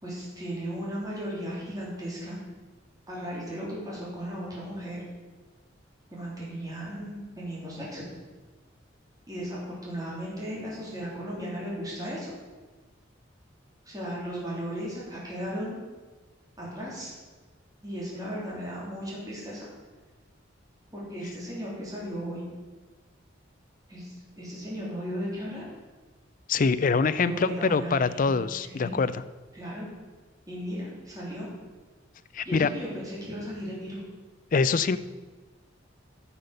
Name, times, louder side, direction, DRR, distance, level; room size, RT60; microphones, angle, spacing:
voice 1, 0.0-2.4 3.1-5.0 6.1-8.0 9.3-12.3 13.8-15.8 16.6-17.1 17.8-19.7 20.9-22.4 23.9-25.7 27.2-29.0 29.5-29.9 30.5-31.5 32.4-34.0, equal, 20° right, -6 dB, 3.4 m, -36 dB
voice 2, 26.5-29.2 32.3-32.7 34.5-35.0, left 4 dB, 45° left, 14 dB, 0.4 m, -24 dB
9.8 x 7.0 x 6.5 m, 1.3 s
head